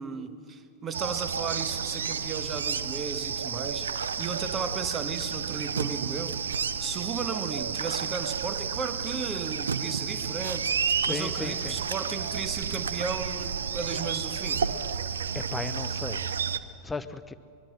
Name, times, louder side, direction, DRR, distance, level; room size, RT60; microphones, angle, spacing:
voice 1, 0.0-6.4 6.8-14.7, right 5 dB, 25° right, 1.4 m, -35 dB
sound 1, 0.9-16.6, right 6 dB, 70° right, 0.7 m, -31 dB
voice 2, 11.0-11.8 15.3-16.3 16.8-17.3, left 3 dB, 10° left, 0.9 m, -35 dB
24.0 x 21.5 x 6.3 m
figure-of-eight pair, 90°, 0 cm